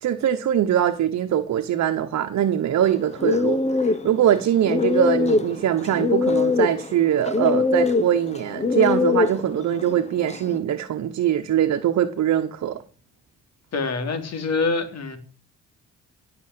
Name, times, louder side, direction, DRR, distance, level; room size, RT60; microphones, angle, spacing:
voice 1, 0.0-12.8, right 10 dB, 65° right, 1.2 m, -22 dB
sound 1, 2.8-10.6, left 4 dB, 20° left, 1.0 m, -23 dB
voice 2, 13.7-15.2, left 4 dB, 60° left, 3.9 m, -25 dB
18.0 x 7.0 x 7.8 m
cardioid pair, 90°, 30 cm